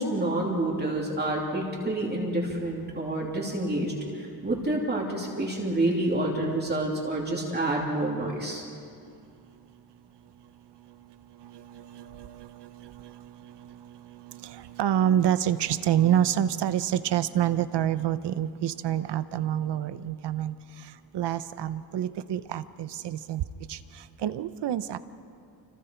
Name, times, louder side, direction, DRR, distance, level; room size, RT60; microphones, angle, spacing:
voice 1, 0.0-8.6, right 1 dB, 25° right, -3 dB, 2.9 m, -28 dB
voice 2, 11.4-20.6 20.8-25.0, right 10 dB, 85° right, 13 dB, 0.9 m, -28 dB
29.5 x 25.5 x 4.6 m, 2.5 s
wide cardioid pair, 140°, 40 cm